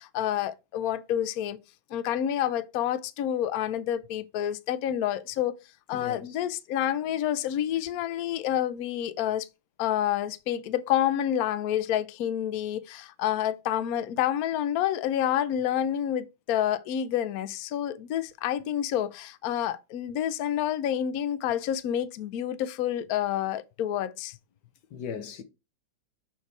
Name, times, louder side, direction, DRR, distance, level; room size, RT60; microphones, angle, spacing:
voice 1, 0.0-1.6 1.9-5.5 5.9-9.5 9.8-24.4, left 10 dB, 90° left, 0.8 m, -28 dB
voice 2, 5.9-6.4 24.9-25.4, left 7 dB, 60° left, 1.4 m, -38 dB
7.0 x 4.7 x 4.7 m
omnidirectional pair, 2.3 m